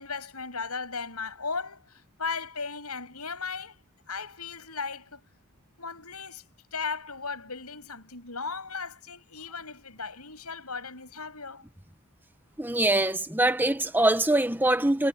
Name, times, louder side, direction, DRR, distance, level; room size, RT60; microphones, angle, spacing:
voice 1, 0.0-3.8 4.1-5.2 5.8-11.6, left 4 dB, 85° left, 7.9 m, -36 dB
voice 2, 12.6-15.1, right 1 dB, 10° right, 1.6 m, -23 dB
head